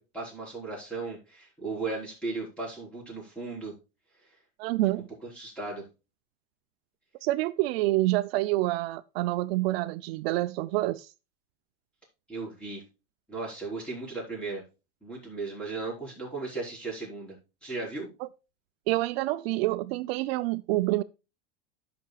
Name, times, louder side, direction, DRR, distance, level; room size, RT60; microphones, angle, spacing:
voice 1, 0.0-3.7 5.2-5.8 12.3-12.8 13.3-14.6 15.0-18.1, right 3 dB, 5° left, 4.9 m, -36 dB
voice 2, 4.6-5.1 7.2-11.1 18.2-18.3 18.9-21.0, right 18 dB, 70° right, 0.6 m, -27 dB
13.0 x 6.0 x 2.3 m
supercardioid pair, 150°, 31 cm